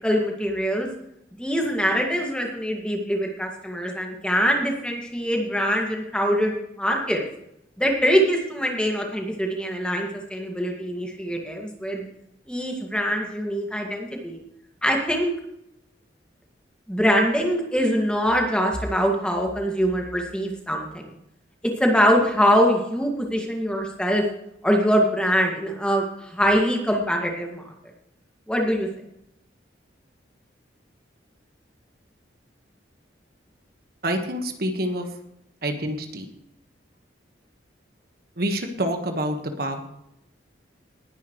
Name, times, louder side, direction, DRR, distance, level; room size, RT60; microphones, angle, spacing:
voice 1, 0.0-0.9 1.4-7.2 7.8-12.1 12.5-14.4 14.8-15.3 16.9-21.1 21.6-24.2 24.6-27.7 28.5-28.9, equal, 5° left, 0 dB, 2.0 m, -23 dB
voice 2, 34.0-35.1 35.6-36.3 38.4-39.8, right 1 dB, 55° right, 5 dB, 1.5 m, -27 dB
19.5 x 10.5 x 3.2 m, 0.78 s
head